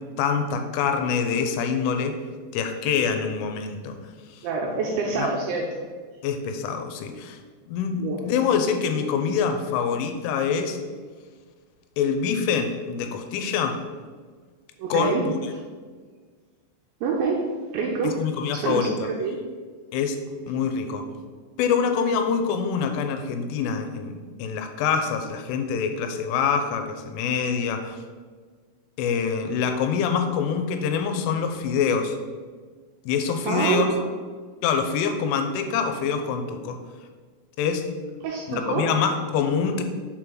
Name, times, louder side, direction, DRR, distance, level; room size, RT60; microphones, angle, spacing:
voice 1, 0.2-2.2 2.5-4.0 4.3-4.5 5.2-5.3 6.2-7.4 7.7-10.8 12.0-13.8 14.9-15.3 18.0-19.1 19.9-20.2 20.5-21.1 21.6-28.0 29.0-32.2 33.1-33.9 34.6-36.8 37.6-37.9 38.5-39.8, left 6 dB, 85° left, 6 dB, 3.0 m, -25 dB
voice 2, 4.4-5.7 8.0-8.2 14.8-15.2 17.0-18.2 18.5-19.4 33.5-34.2 38.2-38.9, right 4 dB, 80° right, -1 dB, 2.6 m, -26 dB
6.7 x 4.5 x 3.8 m, 1.6 s
omnidirectional pair, 5.6 m